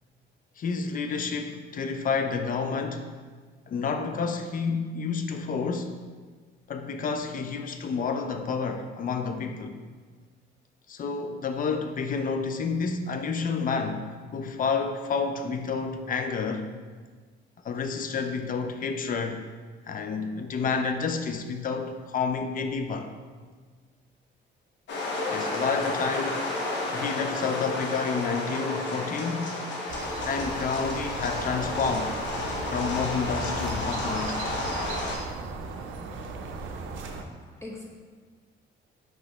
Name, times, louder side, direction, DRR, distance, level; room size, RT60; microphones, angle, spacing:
voice 1, 0.6-3.1 3.7-6.0 6.7-9.8 10.9-16.7 17.6-19.4 19.9-23.1 25.2-26.5 26.9-29.6 30.2-32.2 32.7-34.5, left 5 dB, 45° left, 6 dB, 0.4 m, -30 dB
sound 1, 24.9-35.1, left 2 dB, 65° left, 0.9 m, -31 dB
sound 2, 29.9-37.2, right 3 dB, 80° right, 0.5 m, -36 dB
voice 2, 36.9-37.8, left 2 dB, 10° left, -3 dB, 0.9 m, -44 dB
5.4 x 2.9 x 2.9 m, 1.5 s
cardioid pair, 90°, 20 cm